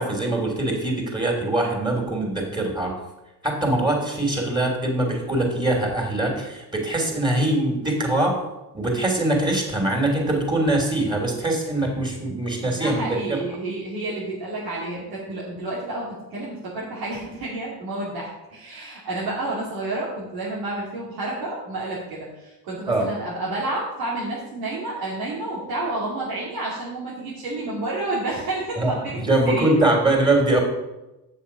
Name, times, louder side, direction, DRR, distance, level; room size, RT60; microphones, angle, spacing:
voice 1, 0.0-2.9 3.4-8.4 8.7-13.0 13.3-13.4 22.9-23.0 28.8-30.6, right 2 dB, 10° right, 0 dB, 3.2 m, -22 dB
voice 2, 12.6-29.7, right 2 dB, 85° right, -7 dB, 2.5 m, -30 dB
7.7 x 6.5 x 5.8 m, 0.97 s
supercardioid pair, 75°, 40 cm